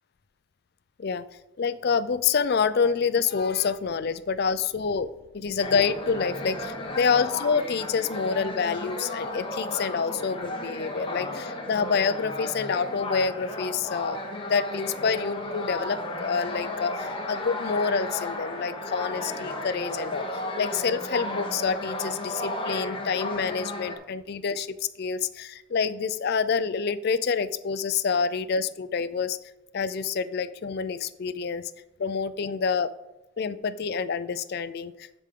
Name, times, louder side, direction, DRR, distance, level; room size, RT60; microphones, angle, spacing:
voice 1, 1.6-5.1 5.3-14.2 14.4-20.3 20.6-24.7 25.0-29.4 29.7-31.7 32.0-32.9 33.4-35.1, left 5 dB, 50° left, 14 dB, 0.4 m, -27 dB
sound 1, 5.6-23.9, left 1 dB, 25° left, 1.0 m, -34 dB
13.0 x 5.0 x 3.7 m, 0.99 s
head